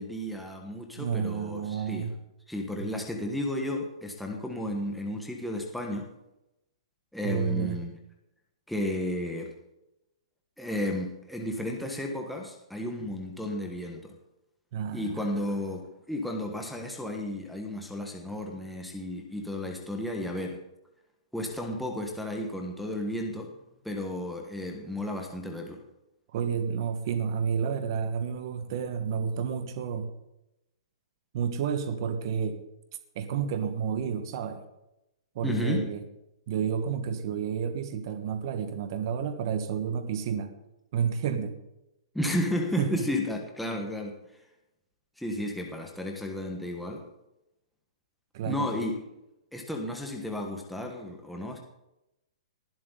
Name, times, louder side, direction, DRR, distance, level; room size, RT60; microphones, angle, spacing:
voice 1, 0.0-2.1 2.5-6.1 7.1-8.0 8.7-9.5 10.6-14.1 14.9-20.6 21.3-23.5 23.8-25.8 35.4-35.9 42.1-44.2 45.2-47.1 48.4-49.0 49.5-51.6, left 1 dB, ahead, 0 dB, 1.3 m, -33 dB
voice 2, 1.0-2.1 2.8-3.0 7.2-7.8 14.7-15.3 26.3-30.1 31.3-32.6 33.1-34.6 35.3-36.0 36.5-40.5 40.9-41.6 42.8-43.0 48.3-48.8, right 7 dB, 40° right, 8 dB, 1.5 m, -30 dB
19.5 x 12.0 x 3.9 m, 0.89 s
hypercardioid pair, 165°, 3 cm